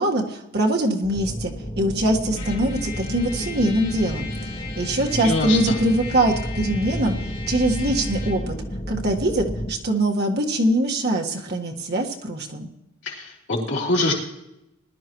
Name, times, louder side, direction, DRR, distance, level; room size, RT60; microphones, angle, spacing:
voice 1, 0.0-4.3 4.8-7.2 7.5-8.5 8.9-12.7, right 1 dB, 50° right, 1 dB, 1.6 m, -23 dB
sound 1, 1.0-9.7, equal, 30° left, 1.6 m, -31 dB
Trumpet, 2.3-8.5, left 5 dB, 90° left, 4.0 m, -39 dB
voice 2, 5.1-5.8 13.0-14.1, left 2 dB, 55° left, -3 dB, 3.5 m, -24 dB
20.0 x 12.0 x 3.1 m, 0.87 s
head